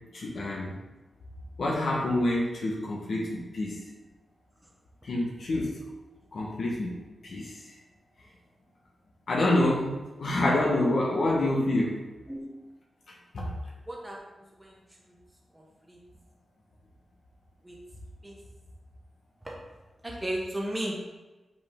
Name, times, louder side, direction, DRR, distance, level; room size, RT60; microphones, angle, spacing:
voice 1, 0.1-0.7 1.6-3.8 5.0-5.8 6.3-7.0 7.2-7.5 9.3-12.0 13.3-13.5, left 1 dB, 60° left, -3 dB, 1.2 m, -27 dB
voice 2, 13.9-14.7 15.5-16.0 17.6-17.8 18.2-18.4 19.4-19.6 20.0-21.0, right 1 dB, 10° right, -2 dB, 0.9 m, -35 dB
5.7 x 5.1 x 3.6 m, 1.1 s
wide cardioid pair, 160°, 0 cm